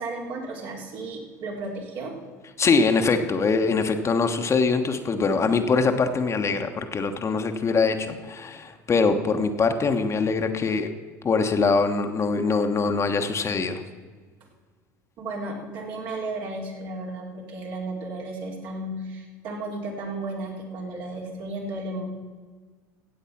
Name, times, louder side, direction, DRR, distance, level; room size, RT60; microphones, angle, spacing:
voice 1, 0.0-2.1 15.2-22.1, right 2 dB, 65° right, -1 dB, 3.5 m, -34 dB
voice 2, 2.6-10.9 11.2-13.8, left 4 dB, 30° left, 6 dB, 1.2 m, -23 dB
15.5 x 8.0 x 5.9 m, 1.5 s
hypercardioid pair, 80°, 9 cm